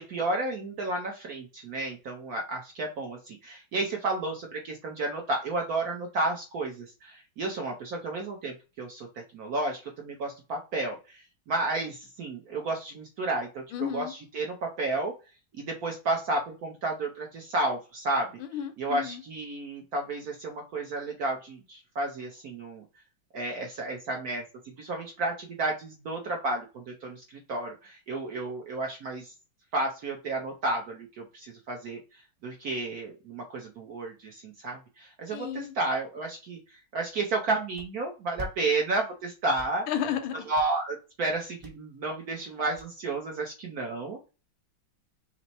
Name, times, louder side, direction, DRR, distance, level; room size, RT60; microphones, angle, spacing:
voice 1, 0.0-9.1 9.3-15.1 15.6-18.3 18.8-22.8 23.3-24.4 24.8-27.2 27.5-29.3 29.7-32.0 32.4-36.6 36.9-39.9 40.5-44.2, right 2 dB, 60° right, 1.0 m, -32 dB
voice 2, 13.7-14.1 18.4-19.2 35.3-35.7 39.9-40.4, left 9 dB, 75° left, 1.4 m, -32 dB
sound 1, 37.7-37.9 38.4-38.5 38.9-39.1 39.4-40.2 40.5-40.8 41.3-41.7 42.0-42.1 42.3-42.4 42.8-43.3, equal, 25° right, 0.7 m, -42 dB
4.5 x 2.0 x 4.0 m
omnidirectional pair, 2.3 m